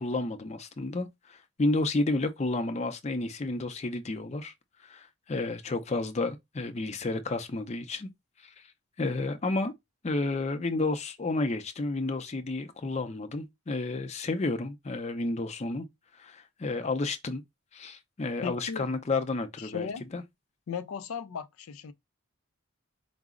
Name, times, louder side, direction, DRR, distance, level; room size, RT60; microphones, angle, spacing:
voice 1, 0.0-4.5 4.8-8.1 8.4-8.5 9.0-9.7 10.0-15.9 16.1-17.4 17.7-20.2, left 2 dB, 30° left, 0.5 m, -31 dB
voice 2, 18.4-18.9 19.6-20.0 20.7-21.9, left 6 dB, 85° left, 0.4 m, -36 dB
4.7 x 2.0 x 3.6 m
head